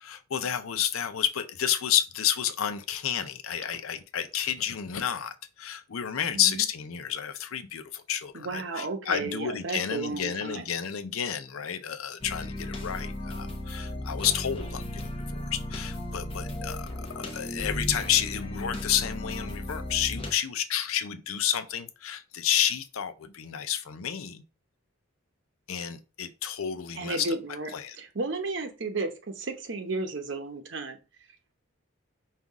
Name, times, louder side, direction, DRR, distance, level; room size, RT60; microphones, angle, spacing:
voice 1, 0.0-24.4 25.7-27.4 27.7-28.0, left 9 dB, 85° left, 0.5 m, -30 dB
voice 2, 8.3-10.7 27.0-27.7 28.0-31.0, right 3 dB, 60° right, 0.8 m, -33 dB
sound 1, 12.2-20.3, left 1 dB, 25° left, 0.7 m, -35 dB
5.5 x 2.4 x 3.5 m
head